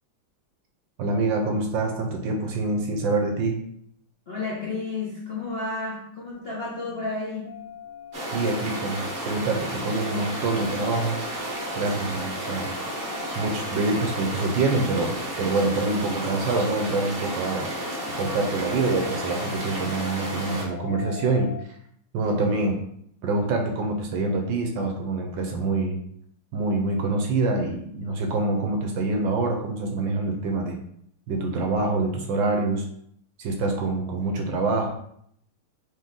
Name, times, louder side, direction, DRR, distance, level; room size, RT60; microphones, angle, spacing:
voice 1, 1.0-3.6 8.3-11.2 11.7-12.7 13.3-17.7 18.2-21.5 22.1-22.8 23.2-26.0 26.5-30.8 31.3-32.8 33.4-34.9, right 3 dB, 70° right, 3 dB, 1.2 m, -26 dB
voice 2, 4.3-7.6, left 3 dB, 60° left, -5 dB, 0.6 m, -32 dB
sound 1, 7.4-21.6, left 9 dB, 90° left, 1.6 m, -41 dB
sound 2, 8.1-20.6, right 1 dB, 45° right, 0.7 m, -32 dB
4.2 x 3.0 x 3.7 m, 0.69 s
omnidirectional pair, 2.3 m